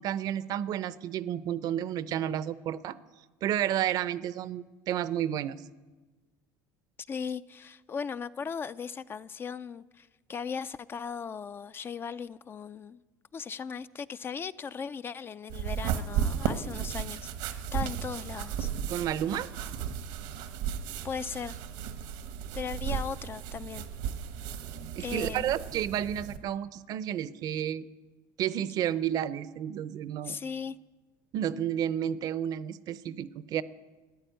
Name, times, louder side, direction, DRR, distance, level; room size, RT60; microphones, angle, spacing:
voice 1, 0.0-3.0 3.4-5.6 18.9-19.5 25.0-27.8 28.4-30.4 31.3-33.6, right 10 dB, 55° right, 0.6 m, -31 dB
voice 2, 7.1-13.0 13.3-18.7 21.0-21.6 22.5-23.9 25.0-25.5 30.2-30.8, left 6 dB, 30° left, 0.4 m, -38 dB
sound 1, 15.5-26.4, right 8 dB, 80° right, 1.2 m, -35 dB
13.5 x 10.0 x 9.1 m
cardioid pair, 120°, 8 cm